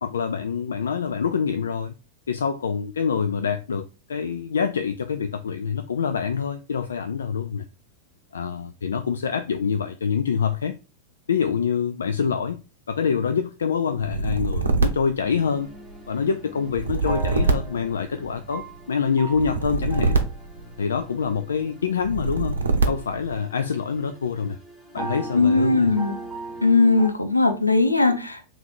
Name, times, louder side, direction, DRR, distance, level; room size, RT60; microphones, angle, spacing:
voice 1, 0.0-1.9 2.3-7.6 8.3-10.8 11.3-12.6 12.9-15.7 16.1-20.2 20.8-22.6 22.9-24.6 24.9-25.9 28.1-28.2, left 6 dB, 70° left, 0.3 m, -26 dB
sound 1, 14.0-16.0 16.7-18.6 19.3-21.2 22.0-23.3, right 3 dB, 70° right, 0.7 m, -25 dB
sound 2, 15.2-27.1, right 2 dB, 5° right, 2.0 m, -40 dB
voice 2, 25.3-26.1 26.6-28.5, left 3 dB, 85° left, 0.7 m, -19 dB
3.8 x 3.1 x 4.4 m
figure-of-eight pair, 90°, 0 cm